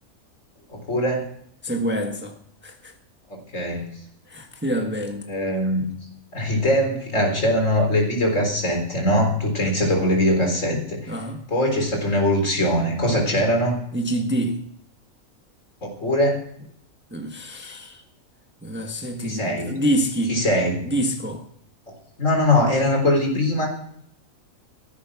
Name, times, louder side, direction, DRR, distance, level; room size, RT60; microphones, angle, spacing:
voice 1, 0.7-1.3 3.3-3.9 5.3-5.9 6.3-11.1 11.5-13.8 15.8-16.4 19.2-19.8 20.3-20.8 22.2-23.7, left 1 dB, 60° left, 4.2 m, -21 dB
voice 2, 1.6-2.4 2.6-2.9 4.3-5.3 11.1-11.4 13.9-14.7 17.1-18.0 18.6-20.4 20.8-21.4, right 1 dB, 10° right, 1.3 m, -26 dB
14.0 x 11.0 x 6.0 m
omnidirectional pair, 1.5 m